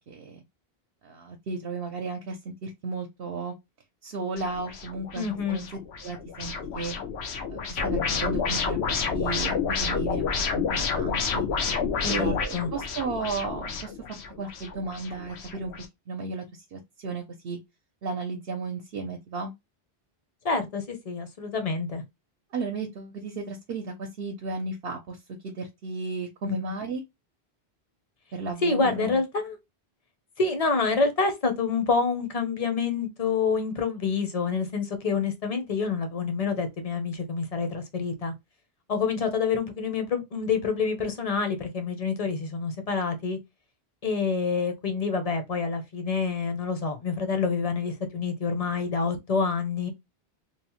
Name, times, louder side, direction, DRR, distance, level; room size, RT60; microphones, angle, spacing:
voice 1, 0.1-0.4 1.0-3.5 4.0-5.6 6.0-7.0 7.5-10.2 10.5-11.5 12.1-15.7 16.1-16.4 16.7-17.6 18.0-19.5 22.5-25.2 25.4-27.0 28.3-29.2, right 4 dB, 70° right, 0.8 m, -34 dB
sound 1, 4.4-15.9, left 5 dB, 90° left, 0.9 m, -30 dB
voice 2, 5.1-5.6 12.0-12.7 20.4-22.0 26.4-26.6 28.6-29.6 30.4-38.3 38.9-43.4 44.0-49.9, left 5 dB, 40° left, 0.7 m, -27 dB
3.0 x 2.0 x 2.9 m
omnidirectional pair, 1.1 m